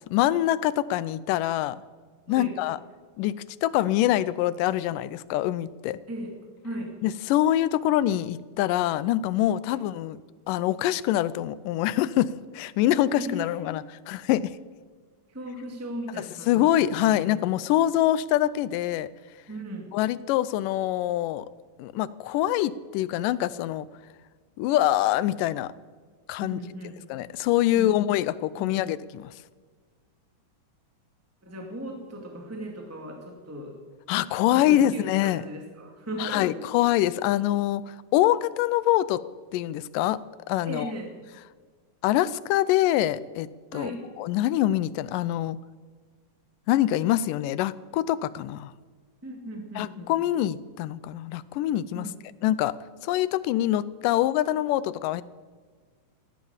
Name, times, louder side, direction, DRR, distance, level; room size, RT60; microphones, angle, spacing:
voice 1, 0.1-1.8 2.3-2.8 3.2-3.4 3.6-6.0 7.0-10.2 10.5-14.5 16.2-19.1 19.9-21.5 21.8-23.9 24.6-25.7 26.3-26.6 27.1-29.3 34.1-35.4 36.2-39.2 39.5-40.2 40.5-40.9 42.0-43.9 44.2-45.6 46.7-48.7 49.8-52.1 52.4-52.7 53.0-55.2, left 13 dB, 85° left, 17 dB, 2.2 m, -25 dB
voice 2, 6.1-6.4 6.6-7.0 9.7-9.8 13.2-13.7 15.3-17.3 19.5-19.9 26.4-27.0 27.7-28.0 28.6-28.7 31.4-33.8 34.4-36.7 40.7-41.1 43.7-44.0 49.2-50.1 51.9-52.2, equal, 5° right, 2 dB, 1.7 m, -37 dB
16.0 x 12.0 x 7.2 m, 1.5 s
omnidirectional pair, 3.8 m